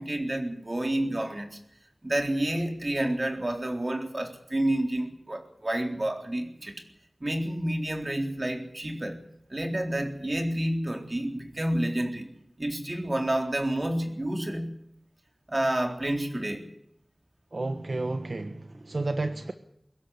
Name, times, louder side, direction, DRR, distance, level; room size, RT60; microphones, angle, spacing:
voice 1, 0.0-1.6 2.0-6.8 7.2-9.2 9.5-12.3 12.6-14.7 15.5-16.7, right 1 dB, 40° right, 3.9 m, -29 dB
voice 2, 17.5-19.5, right 2 dB, 65° right, 1.3 m, -31 dB
23.5 x 12.5 x 10.0 m
wide cardioid pair, 60°, 0 cm